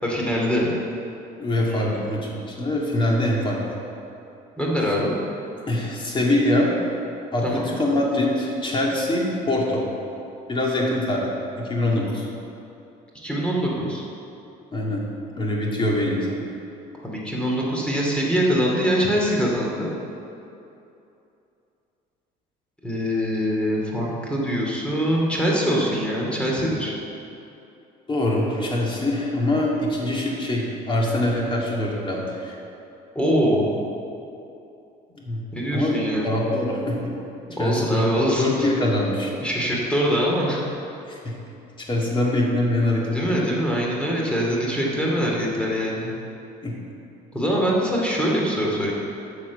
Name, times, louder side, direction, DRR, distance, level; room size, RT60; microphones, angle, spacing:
voice 1, 0.0-0.7 1.7-2.0 4.6-5.1 7.4-7.6 13.1-14.0 17.0-19.9 22.8-26.9 33.1-33.7 35.5-36.4 37.6-38.7 39.4-40.6 43.1-46.1 47.3-48.9, equal, 5° left, -3 dB, 2.4 m, -23 dB
voice 2, 1.4-3.8 5.7-6.7 7.3-9.8 10.5-11.3 11.6-12.3 14.7-15.0 15.4-16.4 28.1-32.5 35.2-35.4 35.7-36.0 36.2-37.1 37.6-38.1 38.4-39.3 41.2-41.3 41.9-43.0 46.6-46.7, left 1 dB, 30° left, -3 dB, 2.3 m, -23 dB
9.7 x 6.2 x 6.9 m, 2.8 s
cardioid pair, 110°, 17 cm